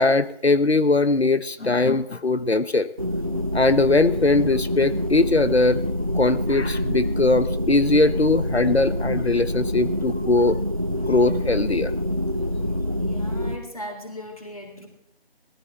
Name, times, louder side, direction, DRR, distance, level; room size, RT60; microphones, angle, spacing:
voice 1, 0.0-2.9 3.5-5.8 6.1-10.6 10.9-11.9, left 3 dB, 85° left, 12 dB, 1.0 m, -20 dB
sound 1, 3.0-13.6, equal, 35° right, 0.8 m, -26 dB
voice 2, 13.0-14.9, equal, 35° left, 2 dB, 3.5 m, -37 dB
19.5 x 14.5 x 3.6 m, 0.71 s
figure-of-eight pair, 170°, 31 cm